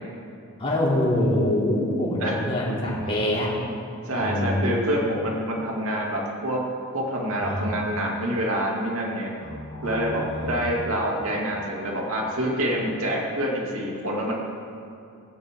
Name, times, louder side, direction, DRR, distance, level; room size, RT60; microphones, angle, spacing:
voice 1, 0.6-3.5 4.1-4.8 7.4-7.9 9.4-10.8, left 1 dB, 25° left, -6 dB, 3.2 m, -25 dB
voice 2, 4.1-6.6 6.9-9.3 9.8-14.3, equal, 70° right, -2 dB, 2.7 m, -26 dB
16.5 x 16.0 x 3.8 m, 2.6 s
head